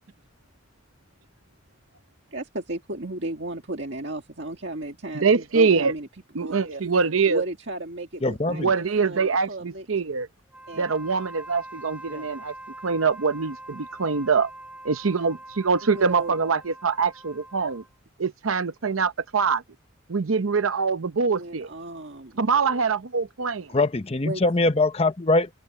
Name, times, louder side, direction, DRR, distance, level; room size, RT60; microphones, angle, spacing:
voice 1, 2.3-6.1 6.4-6.8 7.3-9.9 10.7-10.9 15.8-16.4 21.3-22.3 24.2-24.4, right 2 dB, 60° right, 2.0 m, -34 dB
voice 2, 5.1-5.9 6.3-7.4 8.5-10.3 10.8-12.5 12.8-14.5 14.8-17.8 18.2-19.6 20.1-21.7 22.4-23.7, right 5 dB, 90° right, 0.8 m, -24 dB
voice 3, 8.2-8.7 12.1-12.3 23.7-25.5, left 2 dB, 30° left, 0.7 m, -22 dB
Wind instrument woodwind instrument, 10.5-17.9, right 1 dB, 5° right, 7.8 m, -43 dB
open air
head